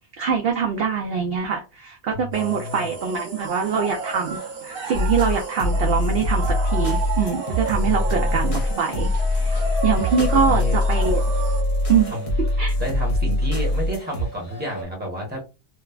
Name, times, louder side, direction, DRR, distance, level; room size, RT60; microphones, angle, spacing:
voice 1, 0.2-11.2 11.9-12.1 12.6-12.7, right 6 dB, 65° right, 0.6 m, -24 dB
voice 2, 2.1-2.9 7.8-8.7 10.2-10.8 12.1-12.3 12.8-15.4, left 1 dB, 10° right, 1.0 m, -31 dB
sound 1, 2.3-11.6, right 5 dB, 45° right, 1.1 m, -33 dB
sound 2, 4.9-14.3, left 1 dB, 40° left, 0.5 m, -23 dB
sound 3, 6.8-14.8, right 1 dB, 75° left, 1.1 m, -39 dB
3.1 x 2.0 x 2.3 m
omnidirectional pair, 1.4 m